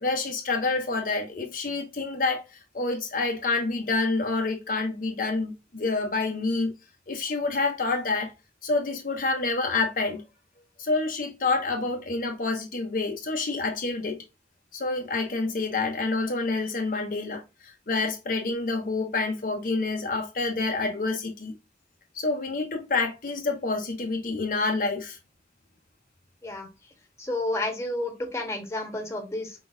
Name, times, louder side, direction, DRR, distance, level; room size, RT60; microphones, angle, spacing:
voice 1, 0.0-6.7 7.1-8.3 8.6-10.2 10.8-14.2 14.7-21.5 22.1-25.2, left 3 dB, 50° left, 0.7 m, -28 dB
voice 2, 27.2-29.7, left 1 dB, 15° left, 1.1 m, -31 dB
4.7 x 3.9 x 2.5 m
head